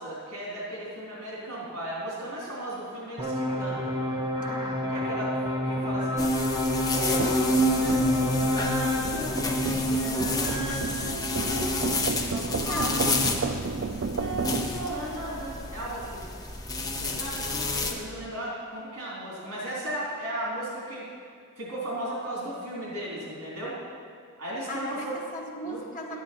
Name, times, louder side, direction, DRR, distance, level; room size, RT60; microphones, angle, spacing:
voice 1, 0.0-4.0 4.9-6.3 6.9-7.3 7.6-8.1 8.4-11.7 12.3-13.2 13.7-13.9 14.1-16.2 17.0-21.1 21.6-23.8 24.4-25.3 25.6-25.8 26.1-26.2, right 1 dB, 80° right, -6 dB, 3.3 m, -36 dB
sound 1, 3.2-9.0, left 1 dB, 20° right, 1.0 m, -29 dB
voice 2, 4.4-4.9 12.7-13.0 13.2-13.6 24.7-26.2, left 1 dB, 35° left, 0 dB, 1.7 m, -37 dB
sound 2, 6.2-17.9, left 1 dB, 15° left, 0.8 m, -28 dB
sound 3, 7.2-14.7, right 4 dB, 55° right, 0.5 m, -33 dB
12.0 x 10.0 x 4.4 m, 2.2 s
head